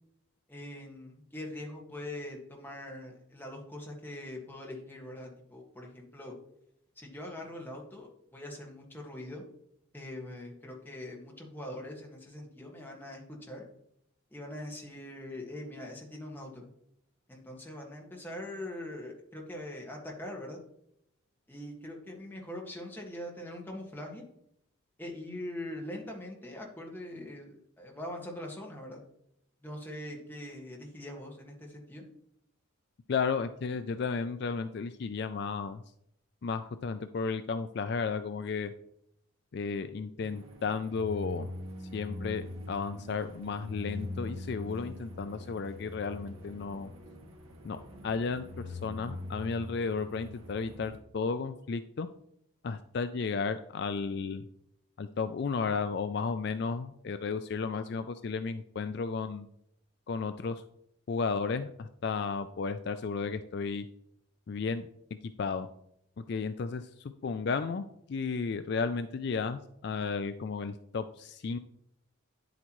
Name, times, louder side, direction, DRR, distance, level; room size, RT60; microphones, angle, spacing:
voice 1, 0.5-6.3 7.0-9.4 9.9-13.6 14.3-16.6 17.3-20.6 21.5-24.2 25.0-29.0 29.6-32.0, left 1 dB, 10° left, -1 dB, 1.6 m, -42 dB
voice 2, 33.1-35.8 36.4-38.7 39.5-41.5 41.8-46.9 47.6-47.8 48.0-52.1 52.6-54.5 55.0-59.5 60.1-60.6 61.1-63.9 64.5-64.9 65.2-65.7 66.3-71.6, left 5 dB, 55° left, 10 dB, 0.4 m, -33 dB
sound 1, 40.2-51.0, left 1 dB, 85° right, 1.7 m, -43 dB
9.7 x 8.0 x 3.1 m, 0.75 s
head